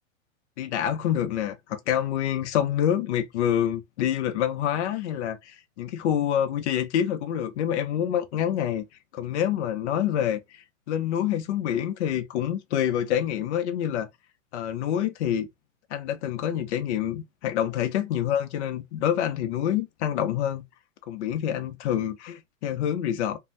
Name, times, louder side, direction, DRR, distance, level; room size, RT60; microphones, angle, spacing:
voice 1, 0.6-8.8 9.1-14.1 14.5-15.5 15.9-20.6 21.1-23.4, left 10 dB, 55° left, 0.7 m, -27 dB
2.6 x 2.3 x 3.2 m
hypercardioid pair, 140°, 40 cm